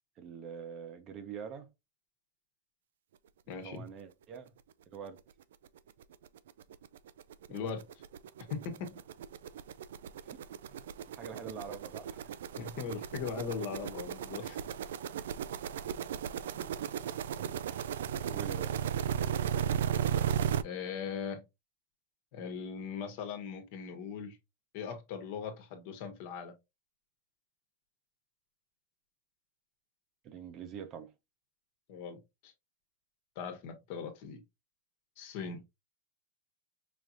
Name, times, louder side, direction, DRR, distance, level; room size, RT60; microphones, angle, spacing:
voice 1, 0.2-1.7 3.6-4.5 4.9-5.2 10.3-10.4 10.7-12.3 16.5-16.9 17.4-17.9 18.3-18.8 30.2-31.1, right 7 dB, 35° right, 0.7 m, -45 dB
voice 2, 3.5-3.8 7.5-7.8 8.5-8.9 12.6-14.6 20.6-21.4 22.3-24.4 24.7-26.5 31.9-32.5 33.3-34.4 35.2-35.6, left 6 dB, 55° left, 1.1 m, -39 dB
Hellicopter Pass, 5.2-5.3 5.7-5.8 6.0-20.6, right 9 dB, 80° right, 0.3 m, -35 dB
5.0 x 2.9 x 2.5 m
supercardioid pair, 140°, 0 cm